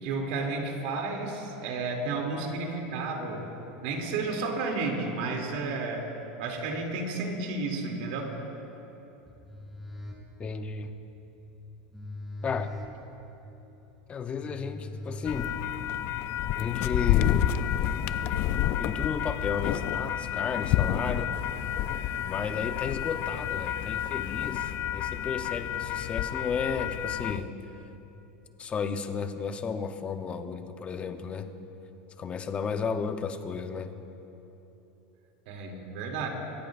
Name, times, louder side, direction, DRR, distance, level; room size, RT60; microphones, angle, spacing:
voice 1, 0.0-3.5 3.8-6.1 6.4-8.4 18.5-18.7 35.5-36.3, right 3 dB, 70° right, 0 dB, 2.8 m, -32 dB
sound 1, 9.2-16.1, left 1 dB, ahead, 3.2 m, -43 dB
voice 2, 10.4-10.9 12.4-12.7 14.1-15.6 16.6-17.6 18.8-21.3 22.2-27.5 28.6-31.5 32.2-33.9, left 5 dB, 25° left, 8 dB, 0.8 m, -33 dB
sound 2, 15.3-27.4, left 11 dB, 50° left, 0.5 m, -29 dB
23.5 x 15.5 x 2.6 m, 3.0 s
supercardioid pair, 135°, 5 cm